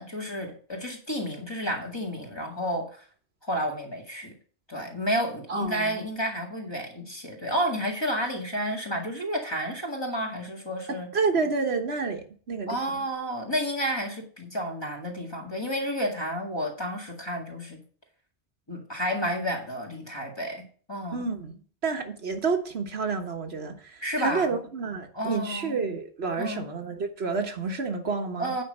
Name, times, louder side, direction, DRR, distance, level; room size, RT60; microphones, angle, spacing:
voice 1, 0.0-3.0 3.4-4.3 4.7-11.1 12.7-17.8 18.7-21.2 24.0-24.6 25.1-25.8 26.4-26.7 28.4-28.6, equal, 25° left, 2.2 m, -31 dB
voice 2, 5.5-6.0 10.9-12.8 21.1-21.6 21.8-28.5, right 4 dB, 75° right, 1.5 m, -29 dB
9.2 x 5.2 x 6.5 m
omnidirectional pair, 1.1 m